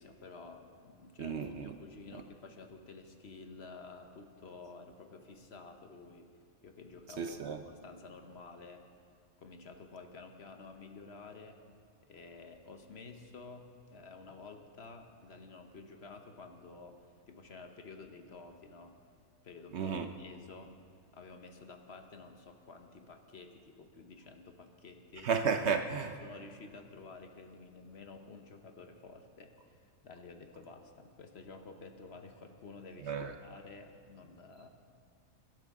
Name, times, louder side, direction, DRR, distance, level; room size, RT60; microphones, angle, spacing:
voice 1, 0.0-6.3 6.6-8.9 9.4-11.6 12.0-19.0 19.4-20.7 21.1-25.3 26.0-34.7, left 3 dB, 50° left, 1.0 m, -51 dB
voice 2, 1.2-1.7 7.2-7.6 19.7-20.1 25.2-26.1 33.1-33.3, right 6 dB, 60° right, 0.8 m, -33 dB
21.5 x 12.0 x 3.6 m
omnidirectional pair, 1.5 m